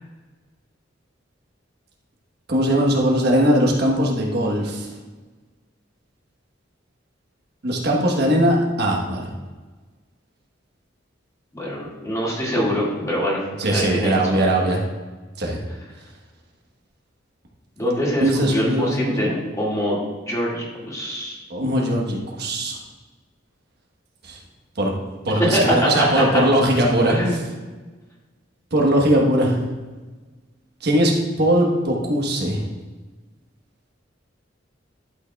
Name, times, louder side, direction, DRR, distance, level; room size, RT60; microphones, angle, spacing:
voice 1, 2.5-4.9 7.6-9.3 13.6-14.8 15.4-15.6 18.2-19.4 21.5-22.8 24.3-24.4 24.8-24.9 25.3-27.1 28.7-29.5 30.8-32.6, right 1 dB, 60° right, -1 dB, 1.2 m, -20 dB
voice 2, 11.5-13.4 13.7-14.6 17.8-20.0 20.3-21.4 25.4-26.4 27.1-27.4, equal, 15° left, -5 dB, 2.0 m, -23 dB
11.5 x 6.3 x 2.3 m, 1.3 s
head